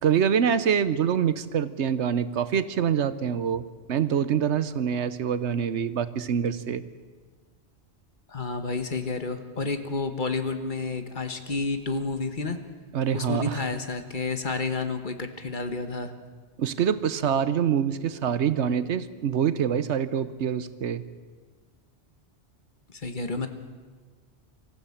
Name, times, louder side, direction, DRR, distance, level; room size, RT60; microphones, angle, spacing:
voice 1, 0.0-6.8 12.9-13.6 16.6-21.0, right 8 dB, 85° right, 14 dB, 1.1 m, -25 dB
voice 2, 8.3-12.6 13.1-16.1 22.9-23.5, left 3 dB, 45° left, 7 dB, 1.5 m, -30 dB
24.5 x 14.5 x 7.2 m, 1.5 s
omnidirectional pair, 1.1 m